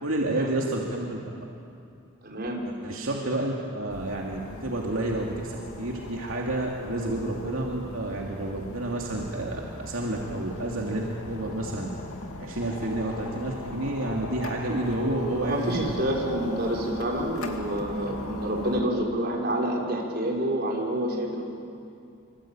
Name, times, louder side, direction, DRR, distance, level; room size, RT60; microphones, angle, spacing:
voice 1, 0.0-1.2 2.6-11.9 12.4-15.9, right 1 dB, 75° right, -2 dB, 2.8 m, -30 dB
voice 2, 2.2-2.6 15.4-21.4, right 1 dB, 45° right, -1 dB, 5.3 m, -28 dB
sound 1, 3.9-18.8, left 2 dB, 85° left, 2.4 m, -39 dB
25.5 x 25.5 x 9.0 m, 2.6 s
head